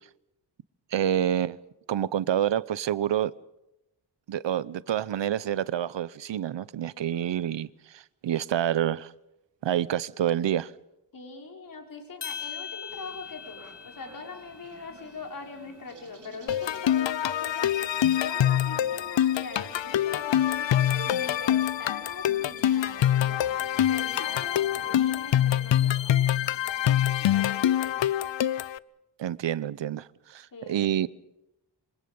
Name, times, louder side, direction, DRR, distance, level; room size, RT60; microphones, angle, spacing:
voice 1, 0.9-1.6 1.9-3.3 4.3-9.1 9.6-10.7 29.2-31.1, right 10 dB, 80° right, 0.8 m, -28 dB
voice 2, 11.1-18.0 18.2-23.6 23.9-28.2 30.5-30.9, left 4 dB, 50° left, 5.8 m, -43 dB
sound 1, 12.2-16.6, left 7 dB, 70° left, 4.0 m, -42 dB
sound 2, 12.9-26.6, right 4 dB, 45° right, 4.1 m, -52 dB
sound 3, 16.5-28.8, left 11 dB, 90° left, 0.8 m, -25 dB
28.0 x 25.5 x 5.4 m
wide cardioid pair, 175°, 43 cm